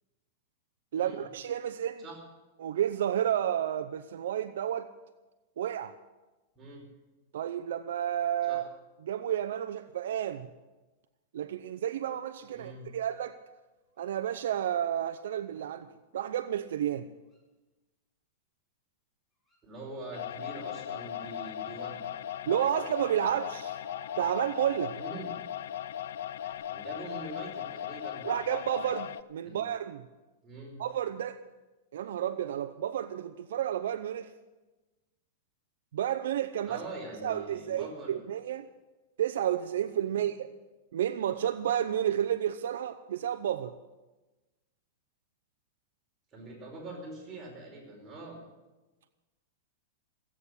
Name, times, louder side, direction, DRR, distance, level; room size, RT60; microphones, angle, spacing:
voice 1, 0.9-2.0 2.6-4.9 5.6-5.9 7.3-8.6 9.0-10.5 11.3-13.4 14.0-15.9 16.1-17.1 22.5-23.8 24.2-24.9 28.2-30.0 30.8-31.4 31.9-34.3 35.9-36.8 37.2-38.7 39.2-40.5 40.9-43.7, right 10 dB, 75° right, 10 dB, 0.7 m, -31 dB
voice 2, 6.6-6.9 8.4-8.6 12.5-12.9 19.6-22.2 24.9-25.3 26.7-28.3 29.4-29.6 30.4-30.8 36.7-38.2 40.1-40.3 46.3-48.4, right 2 dB, 20° right, -2 dB, 5.0 m, -43 dB
sound 1, 14.0-14.1 17.3-17.4 19.5-19.6 22.2-22.4 23.8-24.8 25.8-26.0 26.4-26.5, equal, 15° left, 2.5 m, -47 dB
sound 2, 20.1-29.2, left 11 dB, 75° left, 0.5 m, -38 dB
16.0 x 8.5 x 9.8 m, 1.1 s
supercardioid pair, 145°, 0 cm